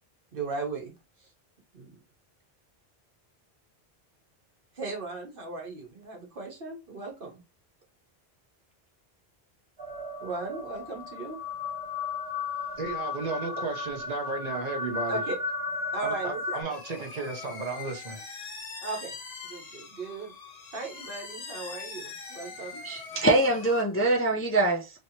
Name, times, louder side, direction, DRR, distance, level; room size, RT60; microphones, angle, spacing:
voice 1, 0.3-0.9 1.2-1.3 1.7-2.0 4.7-7.4 10.2-11.4 15.1-15.4 15.9-16.6 18.8-19.2 19.4-20.3 20.7-22.8, right 3 dB, 60° right, 1.2 m, -37 dB
sound 1, 9.8-16.6, left 4 dB, 80° right, 1.3 m, -35 dB
voice 2, 12.8-15.2 16.0-18.2, right 3 dB, 45° right, 0.8 m, -34 dB
sound 2, 16.7-23.8, left 4 dB, 45° left, 0.8 m, -42 dB
voice 3, 22.8-24.9, right 2 dB, 20° left, 0.4 m, -24 dB
3.2 x 2.8 x 2.8 m
omnidirectional pair, 1.0 m